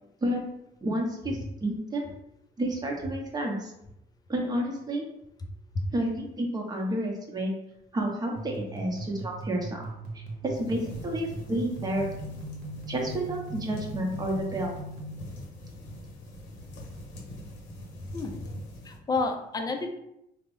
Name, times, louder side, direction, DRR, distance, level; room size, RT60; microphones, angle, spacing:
voice 1, 0.8-2.1 2.6-3.7 4.3-5.0 5.9-7.5 7.9-9.9 10.1-12.1 12.9-14.7, right 1 dB, 25° right, 0 dB, 0.8 m, -30 dB
sound 1, 8.4-15.2, right 2 dB, 65° right, 0.8 m, -39 dB
sound 2, 10.5-19.0, left 1 dB, 90° left, 0.7 m, -44 dB
voice 2, 18.1-18.5 18.9-19.9, left 3 dB, 20° left, 4 dB, 0.4 m, -30 dB
3.3 x 2.0 x 3.0 m, 0.82 s
cardioid pair, 110°, 17 cm